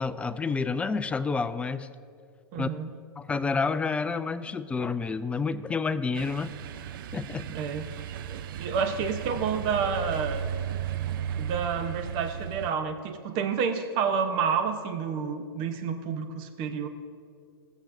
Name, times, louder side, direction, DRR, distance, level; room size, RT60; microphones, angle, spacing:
voice 1, 0.0-1.9 2.5-2.7 3.2-6.5 7.1-7.5, left 4 dB, 10° left, 12 dB, 0.3 m, -29 dB
voice 2, 2.5-2.9 7.5-10.4 11.1-16.9, right 6 dB, 40° right, 7 dB, 0.9 m, -30 dB
sound 1, 6.1-12.7, right 9 dB, 60° right, 0.4 m, -35 dB
17.0 x 7.2 x 2.6 m, 2.3 s
hypercardioid pair, 110°, 13 cm